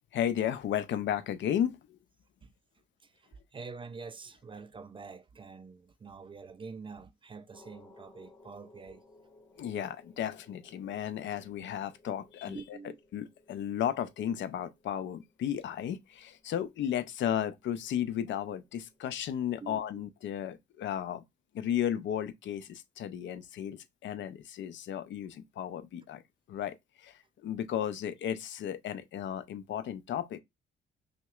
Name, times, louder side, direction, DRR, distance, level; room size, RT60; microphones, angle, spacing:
voice 1, 0.1-2.0 9.6-12.8 13.1-21.2 21.5-26.2 26.5-27.1 27.4-30.4, left 10 dB, 70° left, 0.5 m, -34 dB
voice 2, 3.5-9.0 12.5-13.0 19.6-20.0, right 4 dB, 25° right, 0.3 m, -46 dB
sound 1, 7.5-19.4, left 2 dB, 15° left, 2.0 m, -61 dB
5.6 x 2.1 x 2.4 m
cardioid pair, 90°, 20 cm